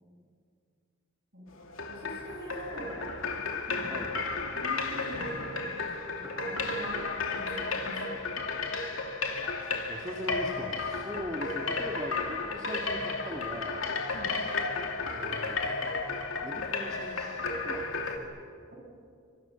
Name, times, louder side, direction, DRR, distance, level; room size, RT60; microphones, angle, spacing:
sound 1, 1.6-18.2, left 4 dB, 90° left, 2.6 m, -33 dB
voice 1, 1.9-3.0 3.7-4.0 4.5-7.1 7.3-8.2 14.1-14.3 18.7-18.8, right 1 dB, 55° right, -1 dB, 7.5 m, -44 dB
voice 2, 9.9-13.9 15.0-15.6 16.4-18.3, equal, 20° right, 0 dB, 1.8 m, -40 dB
28.5 x 25.0 x 6.9 m, 2.3 s
head